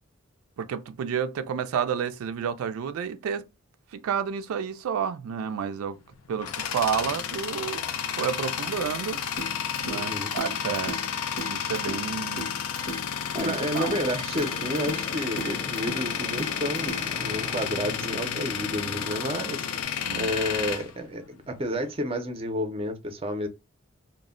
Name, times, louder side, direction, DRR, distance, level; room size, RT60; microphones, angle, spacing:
voice 1, 0.6-3.5 3.9-6.0 6.3-7.8 8.2-9.2 9.8-11.0 11.4-12.5 13.4-14.0 20.1-20.3, right 7 dB, 90° right, 0.3 m, -30 dB
Tools, 5.9-21.8, left 8 dB, 90° left, 0.4 m, -31 dB
sound 1, 9.4-17.4, equal, 65° left, 0.9 m, -39 dB
voice 2, 9.9-10.3 13.3-23.5, equal, 25° right, 0.4 m, -31 dB
sound 2, 14.4-19.8, left 2 dB, 30° left, 0.5 m, -41 dB
2.1 x 2.1 x 3.5 m
head